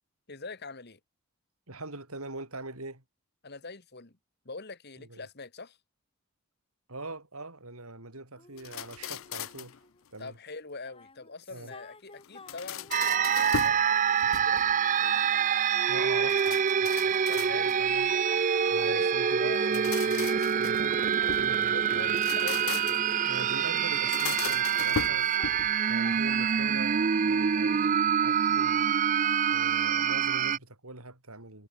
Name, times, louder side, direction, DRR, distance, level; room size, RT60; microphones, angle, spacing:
voice 1, 0.3-1.0 3.4-4.2 4.5-5.8 10.2-14.6 17.3-17.8 18.8-19.1 19.4-19.9 20.3-20.4 21.7-23.1, left 3 dB, 45° left, 1.9 m, -43 dB
voice 2, 1.7-3.0 5.0-5.2 6.9-9.8 10.1-10.4 11.5-11.7 15.9-16.6 16.8-18.1 18.7-21.0 21.3-22.1 23.2-25.3 25.9-28.9 29.5-31.7, right 2 dB, 80° right, 6.9 m, -43 dB
sound 1, 8.4-10.0 10.7-16.3 16.9-23.8 24.1-26.2, left 3 dB, 25° left, 5.2 m, -54 dB
sound 2, 8.6-9.8 12.2-13.9 14.2-14.8 16.3-17.9 19.5-21.5 22.1-23.2 23.9-25.8, left 8 dB, 65° left, 0.5 m, -38 dB
sound 3, 12.9-30.6, right 7 dB, 35° right, 0.4 m, -26 dB
head